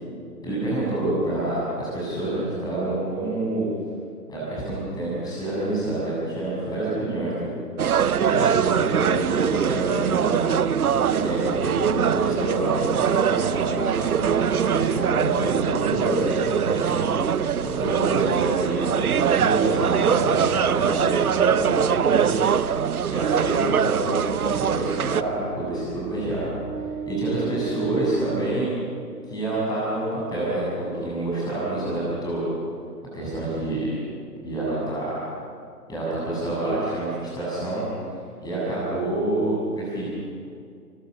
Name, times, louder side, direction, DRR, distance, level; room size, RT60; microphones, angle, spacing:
voice 1, 0.4-3.7 4.3-7.5 8.2-10.4 11.0-17.1 17.6-22.4 23.0-26.5 27.1-28.7 29.3-32.4 33.1-34.0 34.4-35.3 35.9-37.8 38.4-40.1, right 2 dB, 10° left, -7 dB, 7.6 m, -27 dB
sound 1, 7.8-25.2, right 8 dB, 65° right, 0.9 m, -23 dB
sound 2, 22.7-29.6, right 6 dB, 10° right, 2.3 m, -36 dB
30.0 x 13.5 x 6.7 m, 2.3 s
figure-of-eight pair, 140°, 48 cm